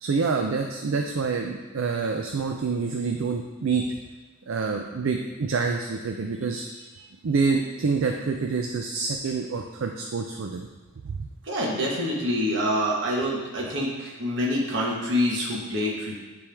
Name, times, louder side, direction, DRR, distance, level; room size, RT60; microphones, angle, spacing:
voice 1, 0.0-3.9 4.5-6.7 7.2-10.7 11.0-11.3, right 4 dB, 80° right, 2 dB, 0.5 m, -27 dB
voice 2, 11.4-16.2, equal, 60° right, -4 dB, 1.3 m, -26 dB
9.9 x 3.5 x 3.4 m, 1.3 s
head